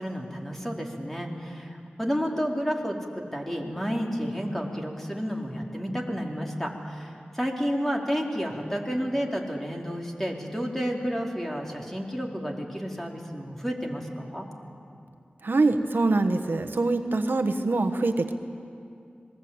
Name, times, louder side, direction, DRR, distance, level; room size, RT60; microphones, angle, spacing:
voice 1, 0.0-14.5, equal, 10° left, 0 dB, 4.1 m, -31 dB
voice 2, 15.4-18.4, right 3 dB, 75° right, 7 dB, 1.3 m, -24 dB
26.0 x 21.0 x 8.8 m, 2.5 s
cardioid pair, 40°, 4 cm